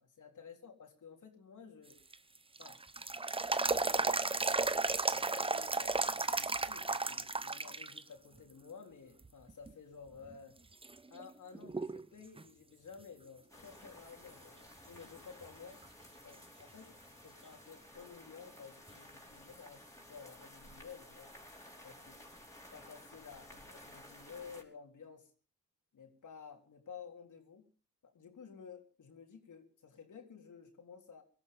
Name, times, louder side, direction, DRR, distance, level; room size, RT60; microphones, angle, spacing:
voice 1, 0.0-2.0 2.6-2.8 3.6-4.6 5.1-10.6 11.1-15.8 16.2-21.3 21.8-22.2 22.7-25.3 25.9-27.7 28.0-31.2, left 6 dB, 65° left, 3 dB, 3.8 m, -53 dB
sound 1, 1.9-8.0 8.4-8.5 9.2-9.7 10.3-10.4 10.8-12.1 12.4-12.5 15.8-15.9 18.9-19.0, right 3 dB, 15° right, 0.8 m, -34 dB
sound 2, 13.5-24.6, left 1 dB, 10° left, 5.0 m, -55 dB
18.0 x 13.0 x 5.3 m, 0.40 s
cardioid pair, 65°, 32 cm